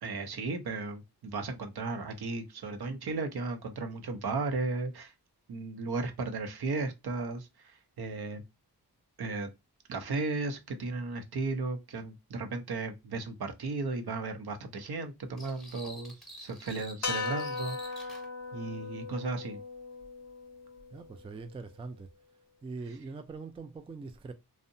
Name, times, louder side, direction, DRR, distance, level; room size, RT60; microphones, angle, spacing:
voice 1, 0.0-5.1 5.5-8.4 9.2-9.5 9.9-18.2 18.5-19.6, right 3 dB, 70° right, 0.7 m, -35 dB
sound 1, 15.4-18.3, equal, ahead, 0.7 m, -48 dB
sound 2, 17.0-21.4, left 4 dB, 40° left, 0.6 m, -38 dB
voice 2, 20.9-22.1 22.6-24.3, right 4 dB, 15° right, 0.3 m, -42 dB
2.6 x 2.1 x 2.6 m
cardioid pair, 60°, 40 cm